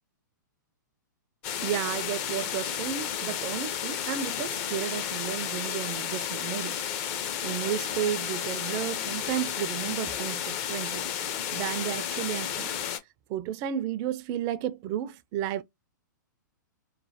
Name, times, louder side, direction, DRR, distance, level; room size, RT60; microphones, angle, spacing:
sound 1, 1.4-13.0, left 9 dB, 40° left, 0.5 m, -32 dB
voice 1, 1.6-6.8 7.4-11.1 11.5-12.7 13.3-15.6, right 10 dB, 35° right, 0.3 m, -32 dB
3.0 x 2.1 x 2.7 m
hypercardioid pair, 125°, 11 cm